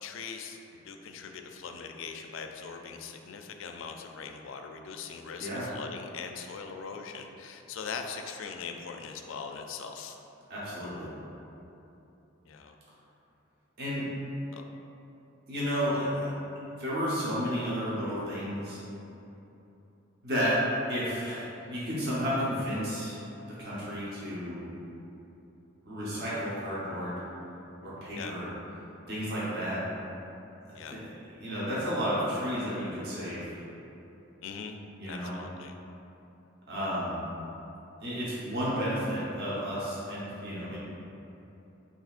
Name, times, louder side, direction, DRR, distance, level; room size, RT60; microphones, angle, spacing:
voice 1, 0.0-10.2 12.5-12.7 14.5-14.6 28.2-28.3 30.7-31.0 34.4-34.8 35.0-35.7, left 5 dB, 70° left, 4 dB, 0.4 m, -41 dB
voice 2, 10.5-11.1 13.8-14.0 15.5-18.8 20.2-20.6 20.9-23.2 23.6-24.7 25.8-27.2 27.8-28.5 29.1-29.8 30.6-31.0 31.4-33.6 35.0-35.3 36.7-37.2 38.0-40.8, equal, 55° right, -9 dB, 1.0 m, -32 dB
6.2 x 2.8 x 2.5 m, 3.0 s
head